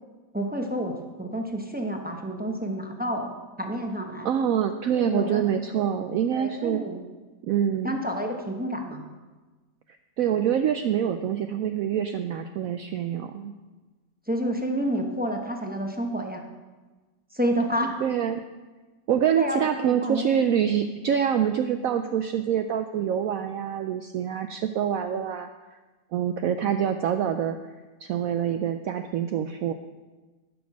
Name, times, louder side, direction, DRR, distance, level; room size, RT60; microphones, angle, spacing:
voice 1, 0.3-3.3 3.6-4.3 5.0-5.4 5.7-5.9 6.3-7.0 7.8-9.0 14.3-16.5 17.3-18.0 19.4-20.3, equal, 10° right, 2 dB, 0.6 m, -29 dB
voice 2, 4.2-6.8 7.4-8.0 10.2-13.5 18.0-18.4 19.1-25.8 26.1-27.6 28.0-29.7, right 9 dB, 70° right, 8 dB, 0.8 m, -26 dB
12.5 x 6.3 x 6.0 m, 1.2 s
omnidirectional pair, 1.9 m